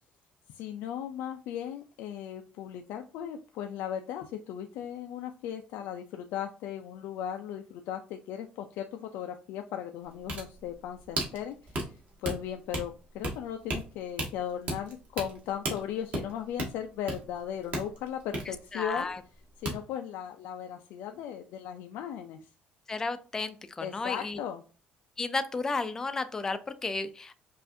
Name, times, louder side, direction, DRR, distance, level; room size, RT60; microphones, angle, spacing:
voice 1, 0.5-19.1 19.6-22.4 23.8-24.6, left 9 dB, 90° left, 5 dB, 0.4 m, -37 dB
sound 1, 10.0-19.4 19.6-19.8, right 2 dB, 40° right, 1.2 m, -36 dB
voice 2, 18.7-19.2 22.9-24.4 25.2-27.4, left 3 dB, 15° left, 12 dB, 0.3 m, -33 dB
5.5 x 2.5 x 2.6 m, 0.36 s
cardioid pair, 170°, 3 cm